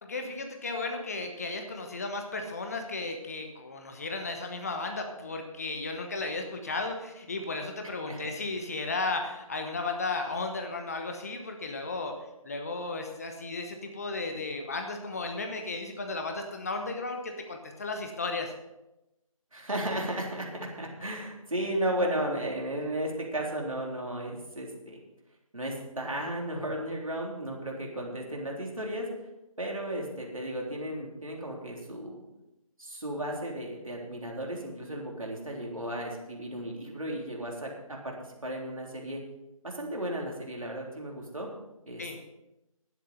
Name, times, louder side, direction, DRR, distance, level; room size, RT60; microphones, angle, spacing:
voice 1, 0.0-12.1 12.4-18.5 42.0-42.2, left 3 dB, 25° left, 4 dB, 1.1 m, -34 dB
voice 2, 19.5-25.0 25.5-29.1 29.6-32.2 32.8-38.2 38.4-39.2 39.6-41.5 41.9-42.0, right 1 dB, 70° right, -1 dB, 3.7 m, -34 dB
11.5 x 10.0 x 5.5 m, 0.93 s
figure-of-eight pair, 155°, 18 cm